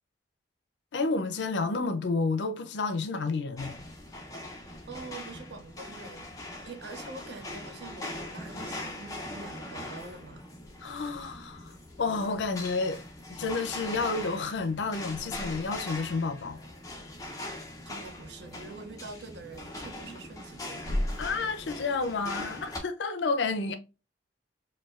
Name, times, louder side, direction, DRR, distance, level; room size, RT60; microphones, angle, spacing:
voice 1, 0.9-3.8 10.8-13.0 13.3-16.6 21.2-23.8, left 3 dB, 70° left, 0.5 m, -30 dB
sound 1, 3.6-22.8, left 1 dB, 20° left, 0.6 m, -40 dB
voice 2, 4.9-10.4 17.8-21.1, right 3 dB, 65° right, 0.6 m, -45 dB
4.4 x 2.2 x 2.4 m
head